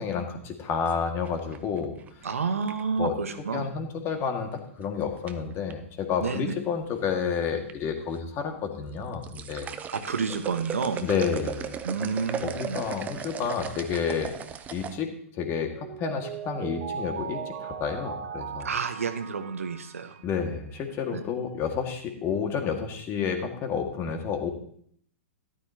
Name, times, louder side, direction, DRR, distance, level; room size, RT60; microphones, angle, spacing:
voice 1, 0.0-1.9 3.0-3.1 3.5-9.7 11.0-11.8 12.4-14.3 14.7-15.1 15.4-15.7 16.0-18.7 20.2-24.5, left 6 dB, 30° left, 4 dB, 2.0 m, -30 dB
sound 1, 0.9-3.0 4.5-4.8 5.3-5.7 6.6-7.2 7.5-7.7 8.2-8.3 8.9-15.0, right 7 dB, 20° right, 0.8 m, -37 dB
voice 2, 2.2-3.7 6.2-6.5 9.9-11.0 11.8-12.8 18.6-20.1 21.1-21.2, right 5 dB, 80° right, 8 dB, 1.3 m, -30 dB
Mallet percussion, 15.5-20.5, right 7 dB, 55° right, 1.6 m, -38 dB
13.5 x 12.0 x 2.9 m, 0.63 s
hypercardioid pair, 115°, 7 cm